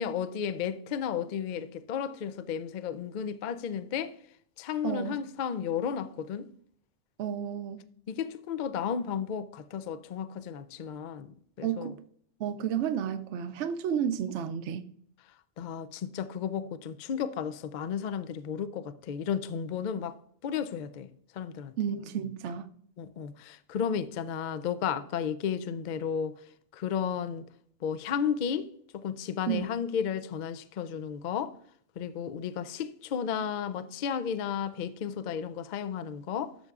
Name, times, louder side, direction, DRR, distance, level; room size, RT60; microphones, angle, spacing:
voice 1, 0.0-4.2 4.6-6.5 8.1-11.9 15.6-20.2 20.4-21.7 23.0-26.3 26.7-27.5 27.8-31.6 32.0-36.6, left 7 dB, 60° left, 0.5 m, -33 dB
voice 2, 4.8-5.2 7.2-7.8 11.6-12.0 12.4-14.9 21.8-22.7 29.5-29.6, right 8 dB, 75° right, 0.9 m, -31 dB
12.5 x 6.8 x 2.4 m
omnidirectional pair, 1.2 m